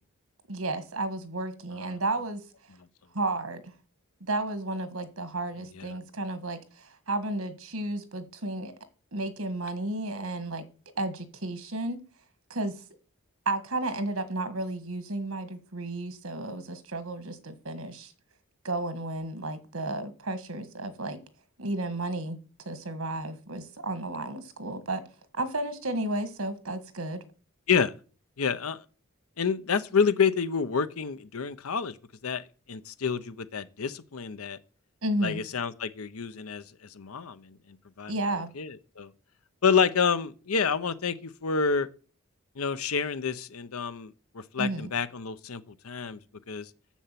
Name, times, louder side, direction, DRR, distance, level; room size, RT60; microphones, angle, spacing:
voice 1, 0.5-2.4 3.1-3.7 4.2-8.7 9.1-10.6 11.0-12.0 12.5-12.8 13.4-18.1 18.6-21.2 21.6-22.4 22.6-25.0 25.3-27.2 35.0-35.4 38.1-38.5 44.6-44.9, right 2 dB, 75° right, 1.5 m, -32 dB
voice 2, 28.4-28.8 29.4-32.0 32.2-34.6 35.2-36.6 36.9-38.1 38.6-39.1 39.6-41.9 42.6-46.2 46.5-46.7, left 6 dB, 85° left, 0.8 m, -28 dB
7.2 x 6.8 x 7.5 m
head